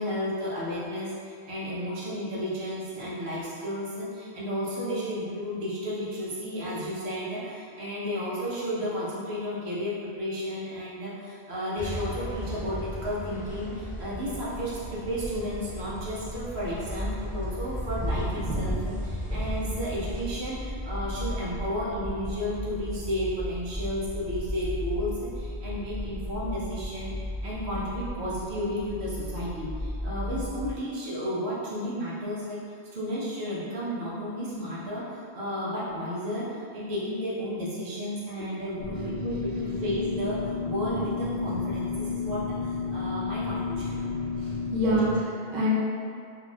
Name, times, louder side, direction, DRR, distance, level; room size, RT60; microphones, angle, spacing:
voice 1, 0.0-32.6 32.9-44.0 44.8-44.9, equal, 80° right, -8 dB, 1.1 m, -33 dB
sound 1, 11.8-20.2, equal, 15° left, 0.3 m, -35 dB
sound 2, 16.9-30.7, left 1 dB, 20° right, 1.5 m, -35 dB
sound 3, 38.8-45.2, left 4 dB, 75° left, 0.9 m, -32 dB
voice 2, 44.4-45.7, equal, 50° right, -7 dB, 0.8 m, -26 dB
4.0 x 2.9 x 2.3 m, 2.3 s
omnidirectional pair, 1.1 m